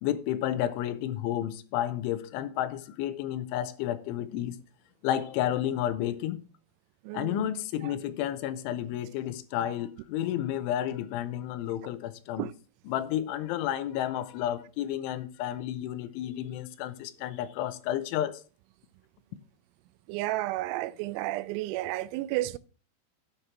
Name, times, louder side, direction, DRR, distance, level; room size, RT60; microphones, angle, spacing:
voice 1, 0.0-4.6 5.0-6.4 7.1-12.5 12.9-18.4, left 12 dB, 85° left, 3.2 m, -31 dB
voice 2, 7.1-7.5 12.4-12.5 20.1-22.6, right 17 dB, 90° right, 3.1 m, -32 dB
9.8 x 7.4 x 6.0 m
omnidirectional pair, 5.4 m